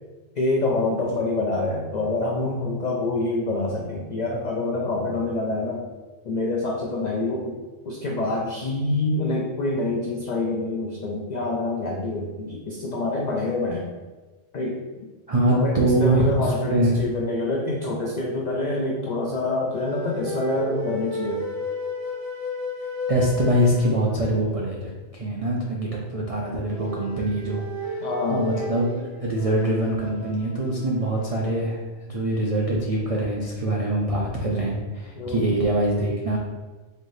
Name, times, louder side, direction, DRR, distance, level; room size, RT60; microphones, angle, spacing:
voice 1, 0.4-5.8 6.2-7.6 7.8-13.9 14.5-14.8 15.5-21.4 28.0-28.5 35.2-35.5, left 2 dB, 70° left, -2 dB, 0.4 m, -26 dB
voice 2, 15.3-17.0 23.1-36.4, right 1 dB, 65° right, -3 dB, 0.3 m, -24 dB
sound 1, 19.7-24.5 26.5-31.5, left 1 dB, 20° left, 0.7 m, -33 dB
4.2 x 2.6 x 3.1 m, 1.2 s
omnidirectional pair, 1.3 m